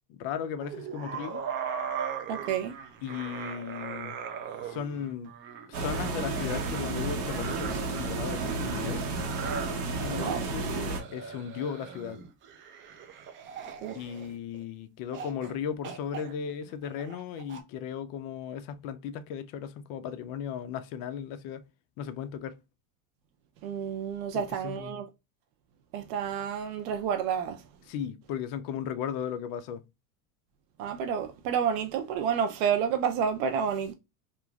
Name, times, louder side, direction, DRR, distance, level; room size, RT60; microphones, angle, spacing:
voice 1, 0.1-1.4 3.0-4.2 4.6-5.3 5.7-9.1 10.0-12.2 13.9-21.7 22.0-22.6 24.3-25.1 27.9-29.8, left 8 dB, 50° left, 0.5 m, -36 dB
sound 1, 0.6-14.6 15.1-15.5 15.8-17.6, right 7 dB, 30° right, 0.4 m, -40 dB
voice 2, 2.3-2.8 10.1-10.4 13.8-14.0 23.6-25.1 25.9-27.6 30.8-33.9, right 7 dB, 70° right, 0.6 m, -30 dB
sound 2, 5.7-11.0, right 3 dB, 50° right, 1.0 m, -32 dB
3.0 x 2.4 x 2.3 m
supercardioid pair, 135°, 44 cm